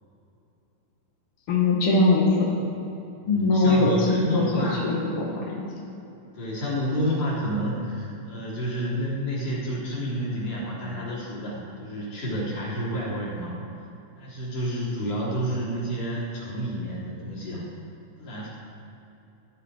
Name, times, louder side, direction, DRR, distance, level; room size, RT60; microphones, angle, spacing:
voice 1, 1.5-2.6 3.3-5.4, left 2 dB, 65° left, -4 dB, 1.4 m, -21 dB
voice 2, 3.2-4.9 6.3-13.5 14.2-17.6 18.2-18.5, equal, 40° left, -6 dB, 4.4 m, -30 dB
17.5 x 11.0 x 4.8 m, 2.9 s
omnidirectional pair, 5.8 m